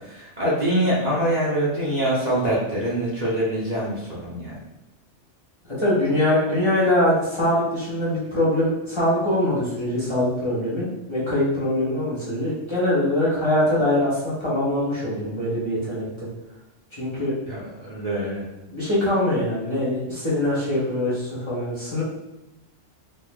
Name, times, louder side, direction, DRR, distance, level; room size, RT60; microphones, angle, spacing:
voice 1, 0.1-4.5 17.5-18.4, right 1 dB, 40° right, -9 dB, 1.0 m, -24 dB
voice 2, 5.8-16.3 17.0-17.3 18.7-22.0, left 1 dB, 25° left, -9 dB, 1.3 m, -23 dB
4.2 x 3.0 x 2.4 m, 0.95 s
omnidirectional pair, 1.3 m